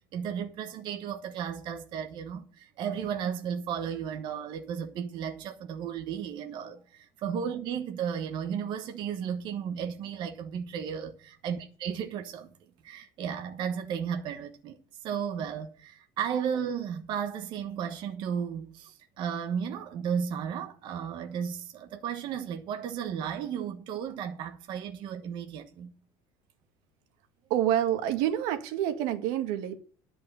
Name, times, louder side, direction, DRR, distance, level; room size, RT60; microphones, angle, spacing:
voice 1, 0.1-12.5 12.8-14.8 15.0-25.9, right 8 dB, 40° right, 1.3 m, -34 dB
voice 2, 27.5-29.8, right 11 dB, 75° right, 1.7 m, -27 dB
11.0 x 5.3 x 7.9 m
cardioid pair, 180°, 12 cm